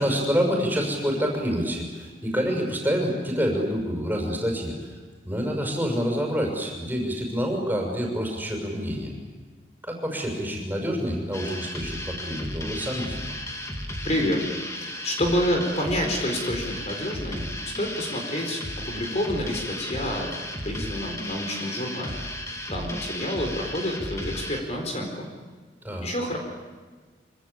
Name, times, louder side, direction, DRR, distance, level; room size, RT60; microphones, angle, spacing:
voice 1, 0.0-4.9 5.2-9.1 9.8-13.4 25.8-26.1, equal, 10° right, 0 dB, 6.5 m, -27 dB
sound 1, 11.3-24.6, left 1 dB, 15° left, 2.6 m, -34 dB
voice 2, 14.0-14.5 14.8-20.4 20.6-22.2 22.7-25.3 26.0-26.4, equal, 40° left, 2 dB, 4.4 m, -28 dB
26.0 x 26.0 x 8.6 m, 1.4 s
head